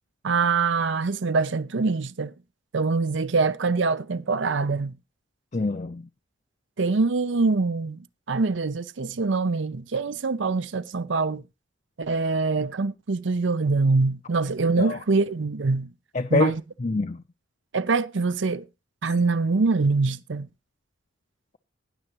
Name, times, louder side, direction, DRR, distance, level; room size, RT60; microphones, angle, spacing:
voice 1, 0.2-2.3 2.7-5.0 6.8-11.4 12.0-15.9 16.3-16.6 17.7-18.6 19.0-20.5, right 4 dB, 70° right, 0.6 m, -24 dB
voice 2, 5.5-6.1 14.8-15.0 16.1-17.2, left 3 dB, 40° left, 0.6 m, -26 dB
19.5 x 6.7 x 3.0 m
head